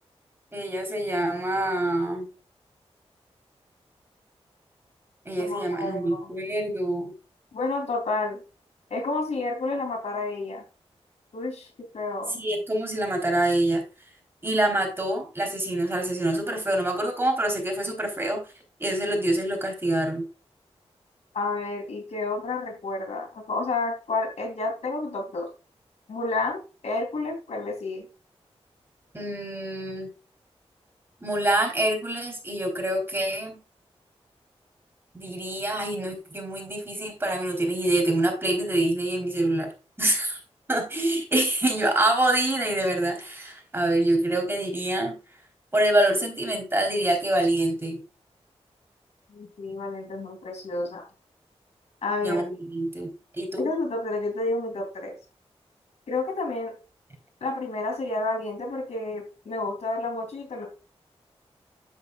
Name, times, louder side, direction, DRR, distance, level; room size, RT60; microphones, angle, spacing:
voice 1, 0.5-2.3 5.3-7.1 12.3-13.8 14.4-18.4 18.8-20.2 29.1-30.1 31.2-33.6 35.1-39.7 40.0-40.4 40.7-45.1 45.7-48.0 52.2-53.1 53.4-53.7, right 1 dB, 20° right, 3 dB, 3.8 m, -26 dB
voice 2, 5.4-6.3 7.5-8.4 8.9-10.6 11.3-12.4 21.3-25.5 26.1-28.1 49.3-51.0 52.0-52.4 53.6-55.2 56.1-56.7 57.4-60.7, left 3 dB, 85° left, 3 dB, 3.2 m, -30 dB
9.8 x 8.0 x 2.4 m, 0.32 s
wide cardioid pair, 75°, 11 cm